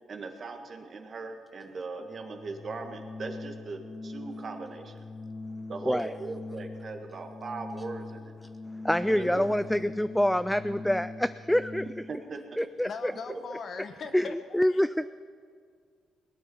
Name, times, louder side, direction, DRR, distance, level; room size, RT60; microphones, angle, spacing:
voice 1, 0.1-4.9 5.7-8.3 8.9-9.6 12.1-12.6 13.3-13.4, right 4 dB, 45° right, 5 dB, 1.6 m, -39 dB
Organ, 1.9-12.3, left 3 dB, 25° left, 0.8 m, -42 dB
voice 2, 5.8-6.1 8.8-11.9 12.6-13.1 14.1-15.1, equal, 5° left, 13 dB, 0.3 m, -26 dB
voice 3, 12.8-14.8, left 5 dB, 50° left, 7 dB, 1.3 m, -40 dB
19.0 x 9.2 x 7.1 m, 2.1 s
cardioid pair, 90°, 0 cm